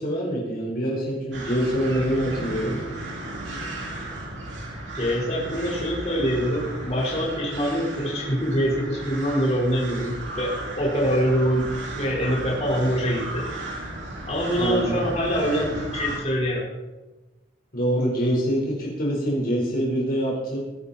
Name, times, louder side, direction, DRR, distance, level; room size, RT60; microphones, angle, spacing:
voice 1, 0.0-2.8 3.4-3.6 14.6-15.0 17.7-20.6, equal, 55° left, -2 dB, 4.6 m, -25 dB
sound 1, 1.3-16.2, right 1 dB, 70° right, 4.7 m, -35 dB
voice 2, 4.9-11.7 11.9-13.4 14.3-16.7, equal, 35° left, -4 dB, 4.8 m, -24 dB
21.0 x 11.5 x 4.4 m, 1.1 s
head